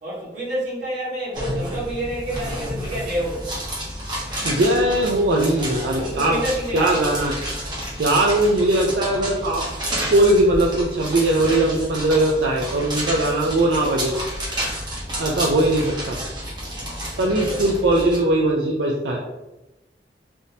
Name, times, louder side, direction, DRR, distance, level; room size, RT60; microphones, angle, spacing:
voice 1, 0.0-3.5 5.5-7.0 15.0-15.7 16.6-17.7, right 1 dB, 45° right, -8 dB, 1.4 m, -30 dB
sound 1, 1.3-18.2, equal, 25° right, 0.9 m, -30 dB
voice 2, 4.4-6.4 6.7-7.3 8.0-9.7 10.1-14.1 15.2-16.2 17.2-19.2, right 1 dB, 75° right, -1 dB, 0.4 m, -20 dB
3.5 x 2.7 x 2.7 m, 0.99 s
head